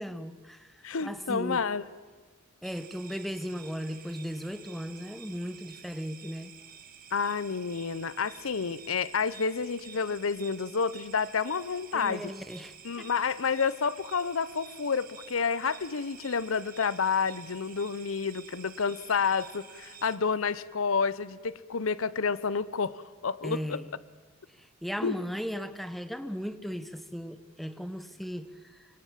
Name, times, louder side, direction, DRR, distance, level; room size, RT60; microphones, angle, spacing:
voice 1, 0.0-1.6 2.6-6.5 11.9-13.1 23.4-23.9 24.5-28.9, equal, ahead, 11 dB, 1.0 m, -37 dB
voice 2, 0.8-1.8 7.1-12.3 12.8-23.8 25.0-25.2, left 5 dB, 90° left, 18 dB, 0.8 m, -29 dB
sound 1, 2.6-20.2, right 8 dB, 45° right, 1.9 m, -50 dB
25.0 x 24.5 x 7.5 m, 1.5 s
head